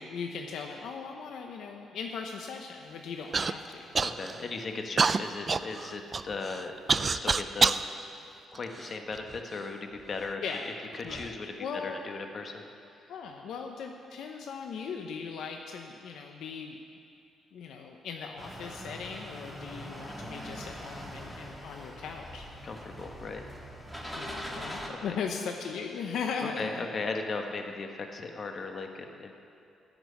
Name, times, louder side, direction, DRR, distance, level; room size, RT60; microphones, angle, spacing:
voice 1, 0.0-3.9 10.4-10.7 11.0-11.3 11.6-12.0 13.1-16.8 17.5-22.5 24.2-26.9, left 6 dB, 75° left, 3 dB, 0.8 m, -38 dB
Human voice / Cough, 3.3-3.5 3.9-4.4 5.0-7.8 8.5-9.4 10.1-10.2 10.9-11.3, right 4 dB, 35° right, 0.4 m, -27 dB
voice 2, 4.0-6.7 7.1-7.7 8.5-10.4 10.9-11.5 11.8-12.6 22.6-23.4 24.9-25.2 26.6-29.3, left 3 dB, 45° left, 4 dB, 1.3 m, -37 dB
sound 1, 18.4-24.9, equal, 5° left, 1.9 m, -42 dB
14.0 x 6.1 x 9.7 m, 2.7 s
cardioid pair, 90°, 0 cm